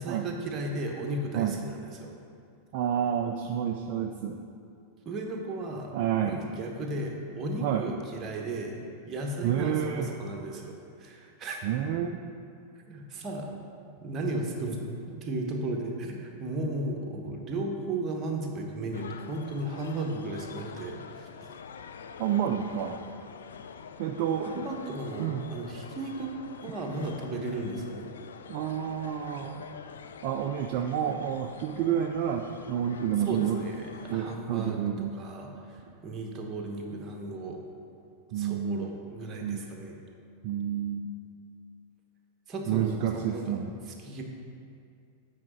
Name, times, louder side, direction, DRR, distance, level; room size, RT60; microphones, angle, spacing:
voice 1, 0.0-2.1 5.0-5.9 6.2-8.8 9.1-11.6 12.9-13.5 14.0-14.8 15.1-21.5 24.5-26.3 26.6-28.1 33.3-37.6 38.3-40.0 42.5-43.6 44.0-44.2, right 2 dB, 25° right, 1 dB, 1.1 m, -35 dB
voice 2, 2.7-4.5 5.9-6.4 6.9-7.0 7.6-7.9 9.4-10.1 11.6-12.2 22.2-23.0 24.0-24.7 25.2-25.5 28.5-29.7 30.2-33.6 34.1-35.2 36.4-36.5 38.3-38.9 39.4-39.6 40.4-41.1 42.7-43.7, right 9 dB, 45° right, 4 dB, 0.4 m, -29 dB
sound 1, 18.9-34.4, left 6 dB, 65° left, 0.3 m, -46 dB
8.4 x 4.9 x 4.4 m, 2.4 s
figure-of-eight pair, 90°, 0 cm